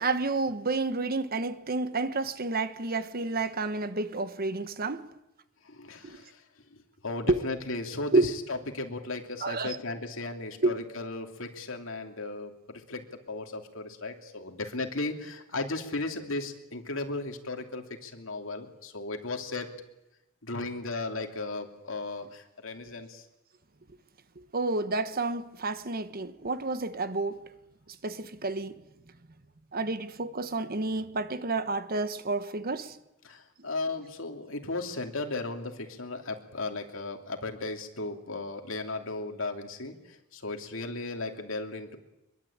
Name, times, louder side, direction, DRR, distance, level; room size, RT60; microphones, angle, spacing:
voice 1, 0.0-5.0 6.0-6.2 7.3-7.4 8.1-8.3 9.4-9.8 10.6-10.7 24.5-27.4 28.0-28.8 29.7-33.0, right 3 dB, 45° right, 1.2 m, -29 dB
voice 2, 5.6-6.4 6.7-6.8 7.0-19.7 20.4-23.2 33.2-42.0, left 3 dB, 65° left, 3.0 m, -36 dB
24.0 x 22.5 x 8.8 m
head